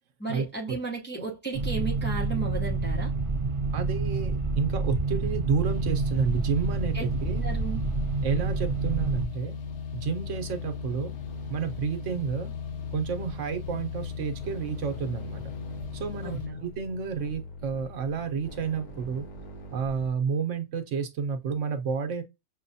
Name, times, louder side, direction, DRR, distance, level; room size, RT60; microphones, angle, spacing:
voice 1, 0.2-3.1 6.9-7.0 7.4-7.8 16.2-16.6, right 3 dB, 10° left, 0.6 m, -34 dB
sound 1, 1.5-9.3, right 3 dB, 40° right, 0.4 m, -28 dB
voice 2, 3.7-7.5 8.2-9.6 9.9-11.1 11.5-12.5 12.9-15.4 15.9-19.2 19.7-22.2, right 6 dB, 75° right, 1.1 m, -30 dB
sound 2, 5.6-16.5, left 6 dB, 70° left, 0.9 m, -37 dB
sound 3, 6.3-20.1, equal, 45° left, 0.9 m, -46 dB
6.1 x 2.1 x 2.7 m
omnidirectional pair, 1.3 m